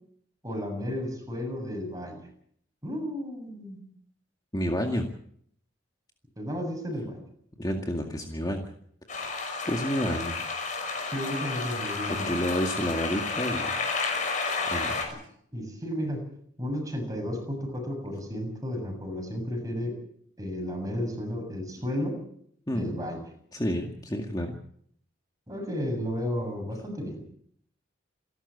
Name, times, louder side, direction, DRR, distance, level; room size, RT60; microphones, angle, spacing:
voice 1, 0.4-2.2 2.8-3.8 6.4-7.2 11.1-12.5 15.5-16.3 16.6-20.0 20.4-22.2 22.7-23.2 25.5-27.2, equal, 20° right, 3 dB, 7.4 m, -33 dB
voice 2, 4.5-5.1 7.6-8.6 9.1-9.4 9.7-10.4 12.0-13.8 14.7-15.0 22.7-23.0 23.5-24.6, equal, 20° left, 3 dB, 2.1 m, -30 dB
sound 1, 9.1-15.1, left 4 dB, 40° left, 6.2 m, -31 dB
28.0 x 12.5 x 8.5 m, 0.66 s
head